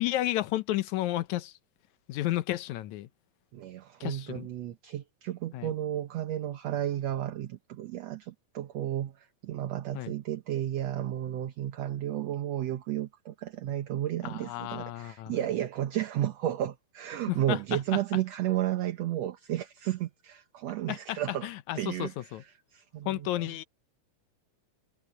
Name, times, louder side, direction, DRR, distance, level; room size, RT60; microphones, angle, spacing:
voice 1, 0.0-1.6 2.1-3.1 4.0-4.5 5.5-5.7 9.9-10.1 14.2-15.4 17.3-18.0 20.9-22.4 23.1-23.6, left 15 dB, 75° left, 2.1 m, -32 dB
voice 2, 3.5-21.5 21.8-22.3 22.7-23.5, right 12 dB, 65° right, 2.0 m, -33 dB
omnidirectional pair, 3.5 m